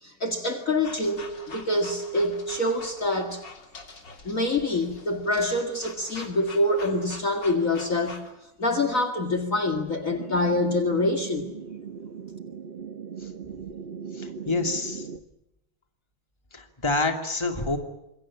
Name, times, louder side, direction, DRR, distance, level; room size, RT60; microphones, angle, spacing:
voice 1, 0.0-3.4 4.2-8.2 8.6-11.5, left 2 dB, 40° left, 5 dB, 2.4 m, -26 dB
sound 1, 0.8-8.3, left 3 dB, 60° left, 3.7 m, -45 dB
sound 2, 10.1-15.2, right 6 dB, 40° right, 0.9 m, -38 dB
voice 2, 14.1-15.1 16.5-17.8, left 3 dB, 15° left, 5 dB, 2.6 m, -28 dB
27.0 x 22.5 x 8.6 m, 0.88 s
omnidirectional pair, 2.2 m